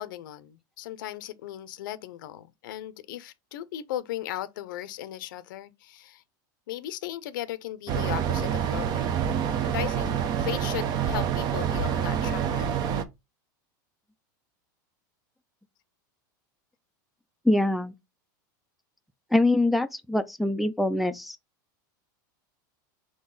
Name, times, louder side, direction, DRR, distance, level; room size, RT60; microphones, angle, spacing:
voice 1, 0.0-6.2 6.7-9.1 9.6-12.7, left 13 dB, 75° left, 0.5 m, -37 dB
sound 1, 7.9-13.0, right 8 dB, 40° right, 0.7 m, -27 dB
voice 2, 17.5-17.9 19.3-21.4, left 2 dB, ahead, 0.3 m, -24 dB
3.8 x 3.5 x 3.9 m
supercardioid pair, 120°, 11 cm